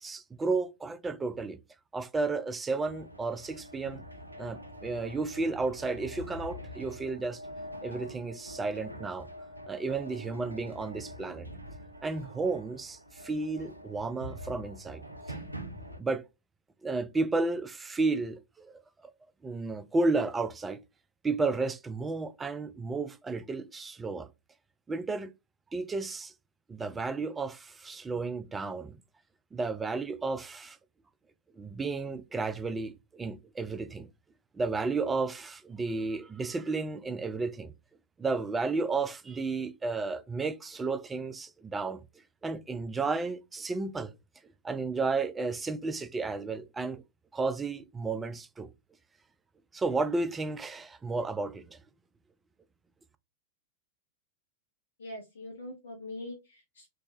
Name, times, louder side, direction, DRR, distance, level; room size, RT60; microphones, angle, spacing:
voice 1, 0.0-1.6 1.9-4.0 4.4-7.4 7.8-9.3 9.7-11.5 12.0-15.0 16.0-16.2 16.8-18.8 19.4-20.8 21.2-24.3 24.9-25.3 25.7-26.3 26.7-29.0 29.5-30.8 31.6-34.1 34.5-37.7 38.2-42.0 42.4-44.1 44.6-47.0 47.3-48.7 49.7-51.8, right 3 dB, 15° right, 0.3 m, -32 dB
sound 1, 2.8-16.0, equal, 85° right, 0.4 m, -45 dB
voice 2, 55.0-56.9, left 1 dB, 65° left, 0.6 m, -43 dB
3.3 x 2.0 x 2.6 m
figure-of-eight pair, 90°, 0 cm